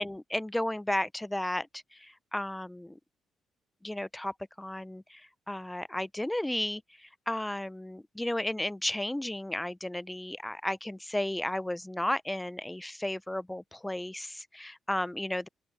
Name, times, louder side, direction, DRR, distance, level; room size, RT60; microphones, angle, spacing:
voice 1, 0.0-3.0 3.8-15.5, left 1 dB, 10° left, 0.4 m, -34 dB
open air
cardioid pair, 90°, 0 cm